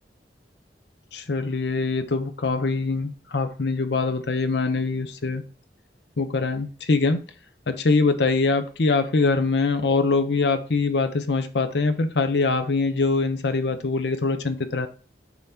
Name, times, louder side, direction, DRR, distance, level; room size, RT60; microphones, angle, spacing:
voice 1, 1.1-5.4 6.2-7.2 7.7-14.9, left 3 dB, 70° left, 9 dB, 0.7 m, -23 dB
6.0 x 3.5 x 5.8 m, 0.39 s
head